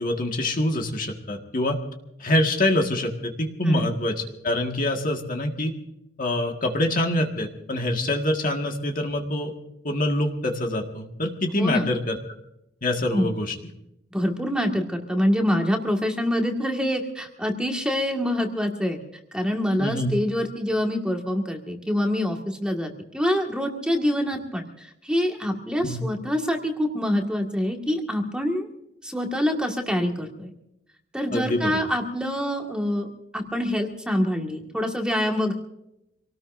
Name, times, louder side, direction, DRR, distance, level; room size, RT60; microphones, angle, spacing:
voice 1, 0.0-1.8 2.2-5.7 6.2-9.5 9.8-12.2 12.8-13.5 19.8-20.1 25.8-26.0 31.3-31.8, left 1 dB, 45° left, 2 dB, 1.8 m, -25 dB
voice 2, 11.6-11.9 13.1-13.3 14.1-19.0 19.3-28.7 29.0-30.5 31.1-35.5, equal, 5° right, 2 dB, 1.9 m, -25 dB
26.5 x 18.5 x 2.7 m, 0.82 s
head